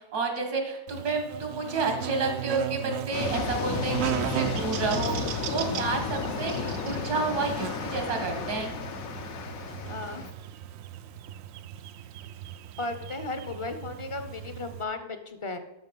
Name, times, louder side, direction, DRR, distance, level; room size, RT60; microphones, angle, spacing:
voice 1, 0.1-8.7, right 4 dB, 85° right, 3 dB, 2.4 m, -30 dB
Buzz, 0.9-14.8, right 11 dB, 70° right, 0.9 m, -37 dB
sound 1, 3.1-10.3, left 5 dB, 65° left, 1.3 m, -33 dB
voice 2, 9.8-10.3 12.8-15.6, left 3 dB, 30° left, 9 dB, 0.7 m, -35 dB
12.0 x 6.1 x 5.4 m, 0.96 s
omnidirectional pair, 1.6 m